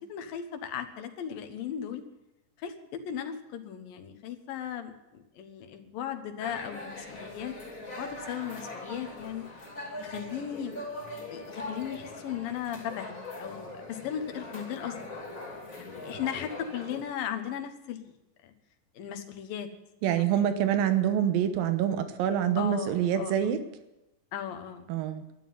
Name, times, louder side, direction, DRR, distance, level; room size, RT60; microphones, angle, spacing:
voice 1, 0.0-2.0 2.6-9.4 10.0-10.8 11.3-13.1 13.4-15.0 15.7-18.1 18.4-18.5 18.9-19.7 20.2-20.6 22.6-23.5 24.3-24.9, left 9 dB, 80° left, 7 dB, 3.0 m, -37 dB
sound 1, 6.4-17.0, left 2 dB, 25° left, 2.8 m, -41 dB
voice 2, 20.0-23.6 24.9-25.2, right 9 dB, 85° right, 9 dB, 2.9 m, -26 dB
11.5 x 11.5 x 9.3 m, 0.95 s
omnidirectional pair, 4.0 m